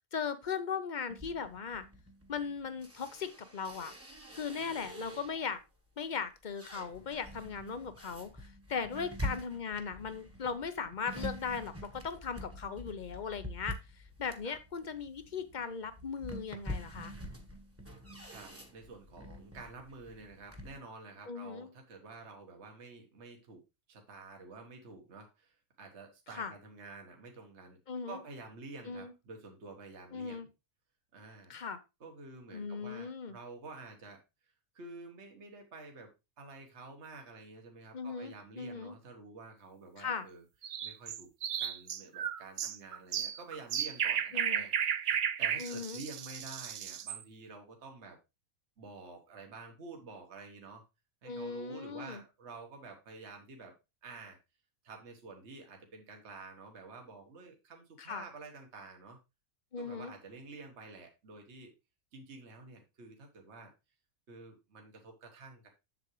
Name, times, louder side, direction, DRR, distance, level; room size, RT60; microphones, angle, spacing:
voice 1, 0.1-1.9 2.3-3.9 4.3-5.6 6.0-8.3 8.7-13.8 14.2-17.1 21.3-21.7 26.3-26.5 27.9-28.2 28.9-29.1 30.1-30.5 31.5-31.8 32.5-33.4 37.9-38.9 40.0-40.3 44.3-44.6 45.6-46.0 51.2-52.2 58.0-58.2 59.7-60.1, left 6 dB, 40° left, 11 dB, 0.8 m, -38 dB
sound 1, 1.1-5.6 6.1-20.8, equal, 10° right, 1.2 m, -46 dB
voice 2, 18.3-23.6 23.9-27.8 28.0-30.5 31.1-31.6 32.0-34.2 34.7-40.4 40.8-41.3 41.6-44.7 45.1-48.2 48.8-50.8 51.2-54.4 54.8-59.2 59.8-61.7 62.1-63.7 64.3-65.7, right 3 dB, 50° right, 3 dB, 1.6 m, -50 dB
sound 2, 40.6-47.2, right 8 dB, 70° right, 0.4 m, -34 dB
7.8 x 7.2 x 3.2 m, 0.25 s
omnidirectional pair, 1.5 m